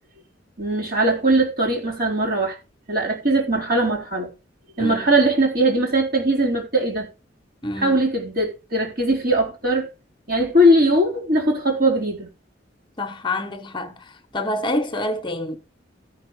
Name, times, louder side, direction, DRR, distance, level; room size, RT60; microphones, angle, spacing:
voice 1, 0.6-2.6 2.9-4.3 4.8-7.1 7.8-9.9 10.3-12.3, right 1 dB, 55° right, 4.0 m, -20 dB
voice 2, 4.8-5.2 7.6-8.0 13.0-15.6, left 1 dB, 25° left, 1.2 m, -27 dB
13.5 x 5.7 x 4.8 m
head